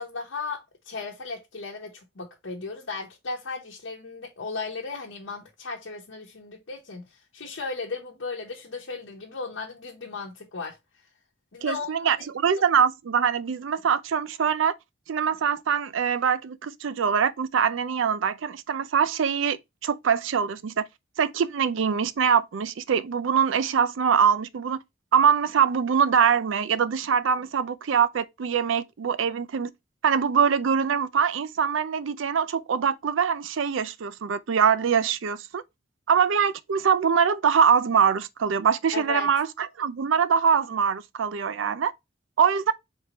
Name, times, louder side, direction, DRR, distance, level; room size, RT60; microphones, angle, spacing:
voice 1, 0.0-10.8 11.5-12.1 12.6-12.7 38.9-39.3, left 4 dB, 85° left, 1.0 m, -36 dB
voice 2, 11.6-14.7 15.1-20.8 21.2-24.8 25.1-29.7 30.0-35.6 36.1-41.9 42.4-42.7, right 7 dB, 85° right, 0.4 m, -23 dB
4.4 x 3.5 x 2.9 m
head